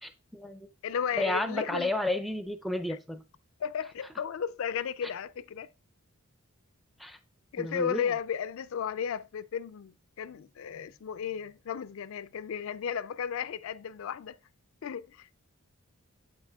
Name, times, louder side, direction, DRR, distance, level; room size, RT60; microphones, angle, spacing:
voice 1, 0.0-0.7 1.2-3.2 7.0-7.2 7.6-8.1, left 1 dB, ahead, 0.4 m, -32 dB
voice 2, 0.8-1.9 2.9-3.0 3.6-5.7 7.5-14.4 14.8-15.3, left 7 dB, 65° left, 0.3 m, -34 dB
8.1 x 7.9 x 2.3 m
head